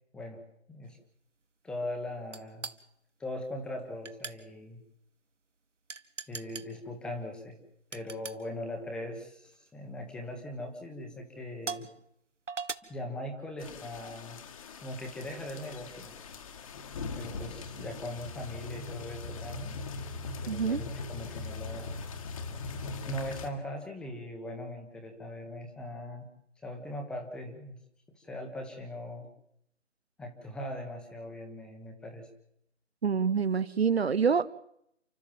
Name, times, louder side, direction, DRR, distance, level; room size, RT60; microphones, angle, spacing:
voice 1, 1.6-2.7 3.2-4.8 6.3-7.6 7.9-11.9 12.9-14.4 14.8-16.2 17.2-19.8 20.4-22.0 23.1-26.3 26.6-27.8 28.1-29.3 30.2-32.3, left 1 dB, ahead, 3 dB, 1.3 m, -40 dB
sound 1, 2.3-2.8 4.1-4.4 5.9-6.7 7.9-8.4 9.4-9.7 10.4-10.5 11.6-11.9 12.5-12.7, right 4 dB, 75° right, 1.5 m, -38 dB
sound 2, 13.6-23.5, left 4 dB, 30° left, 1.7 m, -40 dB
voice 2, 20.5-20.8 33.0-34.5, right 6 dB, 55° right, 18 dB, 0.9 m, -26 dB
30.0 x 13.0 x 7.5 m, 0.74 s
figure-of-eight pair, 150°, 37 cm